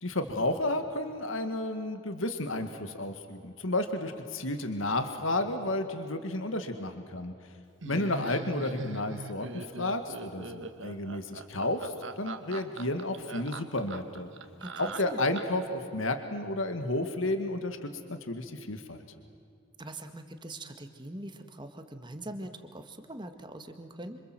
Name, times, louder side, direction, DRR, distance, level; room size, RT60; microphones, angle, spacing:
voice 1, 0.0-7.3 7.8-14.3 14.8-19.0, left 2 dB, 75° left, 7 dB, 1.9 m, -32 dB
Laughter, 7.8-15.7, right 3 dB, 65° right, 1.5 m, -41 dB
voice 2, 14.6-15.2 19.8-24.2, right 1 dB, 20° right, 7 dB, 1.7 m, -42 dB
27.0 x 26.5 x 7.7 m, 2.4 s
head